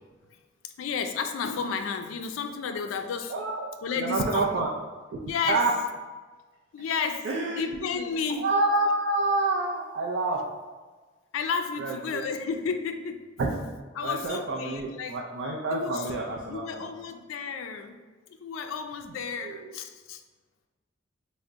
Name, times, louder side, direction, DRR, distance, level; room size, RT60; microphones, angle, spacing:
voice 1, 0.8-3.3 3.8-4.5 5.2-5.6 6.7-7.3 7.6-8.5 11.3-13.2 13.9-15.2 15.7-16.0 16.5-17.9 18.4-20.2, left 5 dB, 85° left, 7 dB, 0.3 m, -32 dB
voice 2, 3.3-3.7 4.0-4.7 5.5-5.7 7.2-8.1 8.4-10.4 11.8-12.2 13.4-13.5 14.0-16.9 19.4-19.7, right 2 dB, 65° right, -2 dB, 0.4 m, -28 dB
3.7 x 2.1 x 3.4 m, 1.3 s
head